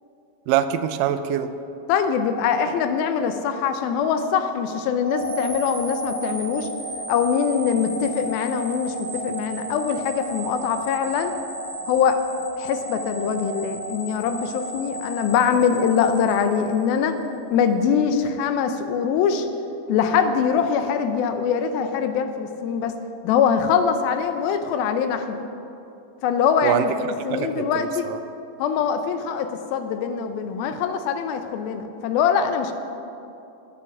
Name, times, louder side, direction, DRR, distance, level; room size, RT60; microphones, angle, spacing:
voice 1, 0.5-1.5 26.6-26.9 27.3-28.2, right 10 dB, 85° right, 10 dB, 1.9 m, -24 dB
voice 2, 1.9-6.7 7.1-11.4 11.9-12.2 12.6-17.2 17.5-19.5 19.9-23.0 23.2-25.4 26.2-28.1 28.6-32.7, left 7 dB, 80° left, 8 dB, 2.4 m, -23 dB
sound 1, 5.1-17.2, right 2 dB, 20° right, 0.5 m, -33 dB
9.8 x 9.7 x 7.1 m, 2.8 s
omnidirectional pair, 4.4 m